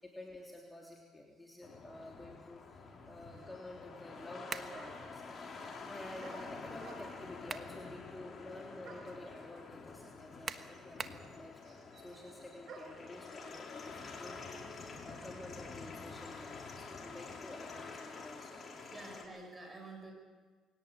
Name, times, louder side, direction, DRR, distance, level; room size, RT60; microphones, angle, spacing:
voice 1, 0.0-5.4 5.9-19.1, left 1 dB, 10° left, -1 dB, 3.3 m, -51 dB
sound 1, 1.6-19.2, left 4 dB, 40° left, 3.7 m, -48 dB
sound 2, 4.2-4.3 4.7-5.2 6.2-7.3 8.8-9.2 10.2-10.3 10.5-13.1, right 4 dB, 55° right, 5.3 m, -53 dB
sound 3, 4.5-4.8 7.1-7.8 8.3-8.4 10.5-11.3, right 5 dB, 35° right, 1.2 m, -42 dB
voice 2, 18.9-20.1, right 2 dB, 20° right, 2 dB, 7.1 m, -49 dB
22.5 x 18.0 x 8.6 m, 1.5 s
cardioid pair, 90°, 0 cm